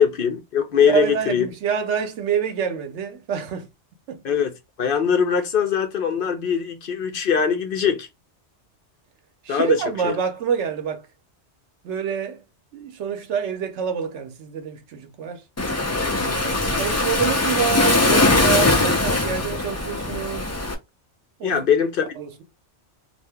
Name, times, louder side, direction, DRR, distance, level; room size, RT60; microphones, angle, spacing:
voice 1, 0.0-1.5 4.2-8.1 9.5-10.2 16.0-16.4 21.4-22.1, left 7 dB, 60° left, 0.7 m, -22 dB
voice 2, 0.9-3.7 4.1-4.2 9.4-11.0 11.8-12.4 12.7-15.4 16.4-20.5 21.4-21.6 22.2-22.4, right 7 dB, 85° right, 1.0 m, -27 dB
Waves surf, 15.6-20.7, left 2 dB, 25° left, 0.3 m, -21 dB
2.7 x 2.5 x 3.3 m
omnidirectional pair, 1.2 m